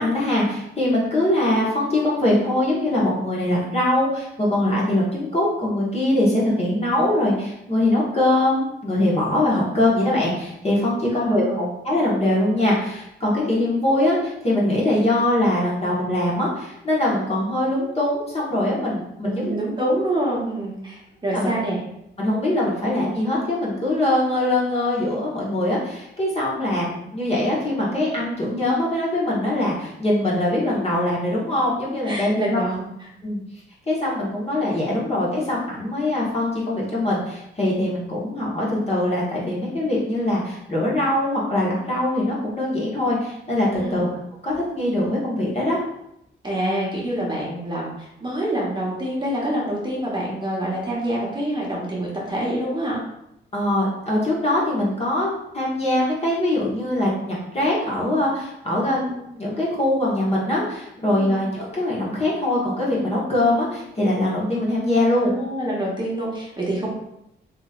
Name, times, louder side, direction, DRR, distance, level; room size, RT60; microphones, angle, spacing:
voice 1, 0.0-19.6 21.3-21.5 22.2-32.6 33.2-33.4 33.9-44.1 44.4-45.8 53.5-55.3 55.5-65.3, left 1 dB, 35° left, -6 dB, 1.3 m, -22 dB
voice 2, 11.1-11.7 19.2-21.8 32.1-32.8 43.8-44.1 46.4-53.0 61.0-61.4 65.2-66.9, right 1 dB, 25° right, -5 dB, 1.1 m, -26 dB
3.1 x 3.0 x 2.4 m, 0.80 s
cardioid pair, 80°, 19 cm